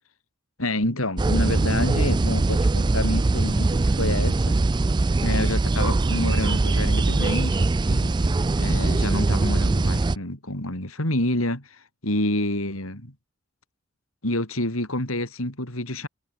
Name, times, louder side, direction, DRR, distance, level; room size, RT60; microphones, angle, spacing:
voice 1, 0.6-4.6 5.2-8.3 8.6-13.1 14.2-16.1, left 1 dB, 85° left, 6.7 m, -28 dB
sound 1, 1.2-10.2, right 2 dB, 20° right, 0.3 m, -22 dB
head